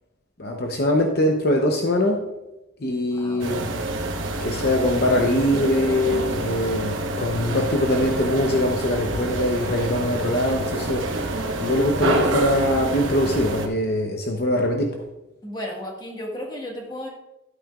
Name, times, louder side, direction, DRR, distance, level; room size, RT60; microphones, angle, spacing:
voice 1, 0.4-2.2 2.8-3.7 4.4-11.0 11.6-14.9, left 1 dB, 50° left, 2 dB, 0.8 m, -22 dB
voice 2, 3.1-3.5 15.4-17.1, left 1 dB, 20° left, -1 dB, 1.6 m, -34 dB
sound 1, 3.4-13.7, right 2 dB, 80° right, 1.1 m, -27 dB
12.0 x 9.0 x 2.4 m, 0.96 s
head